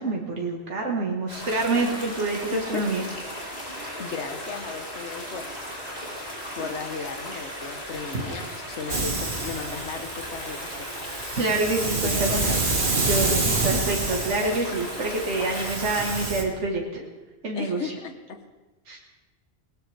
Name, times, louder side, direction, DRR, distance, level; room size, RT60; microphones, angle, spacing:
voice 1, 0.0-3.0 11.3-12.6 13.0-17.0 17.4-17.9 18.9-19.0, right 2 dB, 85° right, -1 dB, 2.0 m, -27 dB
sound 1, 1.3-16.3, equal, 35° left, 4.1 m, -36 dB
voice 2, 2.5-2.8 4.0-5.5 6.6-11.2 11.8-12.6 13.4-13.8 15.5-15.7 17.5-18.4, left 5 dB, 75° left, 7 dB, 1.5 m, -36 dB
Hiss, 8.9-16.4, right 3 dB, 45° right, 1.9 m, -28 dB
20.5 x 19.0 x 3.5 m, 1.2 s
omnidirectional pair, 1.2 m